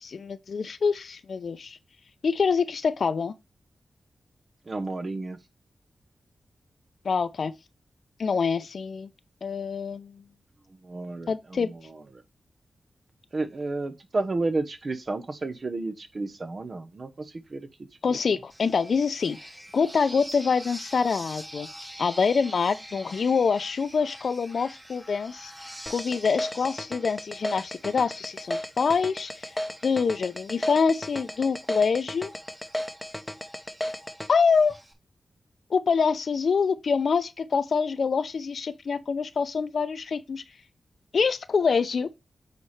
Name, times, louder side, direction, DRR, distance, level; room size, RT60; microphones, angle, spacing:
voice 1, 0.0-1.8 2.2-3.3 7.0-7.5 8.2-9.1 9.4-10.2 11.3-11.7 18.0-19.4 19.7-21.7 22.0-25.5 25.9-29.5 29.8-32.3 34.3-34.7 35.7-40.4 41.1-42.1, left 5 dB, 70° left, 0.6 m, -25 dB
voice 2, 4.7-5.4 10.8-12.0 13.3-17.7 18.1-18.2, right 2 dB, 50° right, 1.0 m, -32 dB
sound 1, 18.5-34.9, equal, 10° right, 1.3 m, -46 dB
sound 2, 25.9-34.3, left 1 dB, 15° left, 0.8 m, -34 dB
8.3 x 4.2 x 3.3 m
cardioid pair, 70°, 0 cm